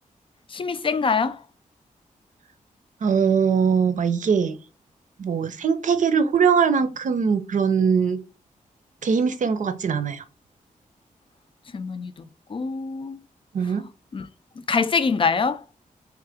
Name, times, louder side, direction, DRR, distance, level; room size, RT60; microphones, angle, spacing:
voice 1, 0.5-1.4 11.7-13.2 14.1-14.3 14.7-15.6, left 5 dB, 40° left, 0.4 m, -24 dB
voice 2, 3.0-4.6 5.2-8.2 9.0-10.2 13.5-13.9, right 6 dB, 65° right, 0.6 m, -21 dB
3.8 x 3.3 x 3.4 m
wide cardioid pair, 105°, 14 cm